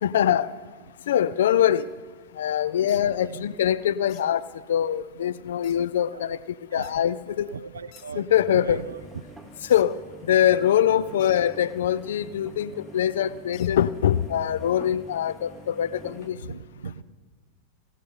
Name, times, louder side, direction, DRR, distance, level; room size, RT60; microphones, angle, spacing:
voice 1, 0.0-0.5 1.1-1.9 2.3-6.4 6.7-7.5 8.2-8.8 9.7-16.4, left 10 dB, 60° left, 19 dB, 0.4 m, -23 dB
sound 1, 1.6-4.3 5.2-5.3 5.6-5.7 6.0-6.1 6.3-6.8 7.1-7.2 7.7-16.3, right 1 dB, 10° right, 0.8 m, -47 dB
sound 2, 2.9-3.0 4.1-4.3 5.6-5.8 6.8-7.0 7.9-8.1 9.7-9.9 11.2-11.5 13.5-13.7, left 14 dB, 45° left, 0.9 m, -49 dB
voice 2, 2.9-3.6 6.1-6.3 6.7-7.1 7.5-9.0 13.5-13.6 16.4-17.0, right 6 dB, 70° right, 15 dB, 0.5 m, -39 dB
17.0 x 13.5 x 5.3 m, 1.5 s
figure-of-eight pair, 90°, 0 cm